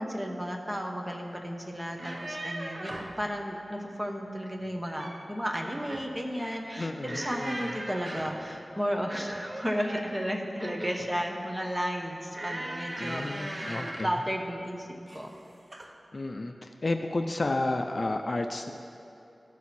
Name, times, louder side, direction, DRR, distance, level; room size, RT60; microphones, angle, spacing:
voice 1, 0.0-14.9 15.1-15.3, equal, 10° right, 1 dB, 1.0 m, -33 dB
sound 1, 1.8-3.2 4.6-5.3 5.6-6.1 7.0-8.5 9.4-11.1 12.3-14.2 15.1-15.4 15.7-15.9, right 1 dB, 35° right, 0.8 m, -39 dB
voice 2, 6.8-7.8 13.0-14.1 16.1-18.7, left 2 dB, 50° left, 6 dB, 0.5 m, -32 dB
15.0 x 6.2 x 4.2 m, 2.7 s
wide cardioid pair, 85°, 0 cm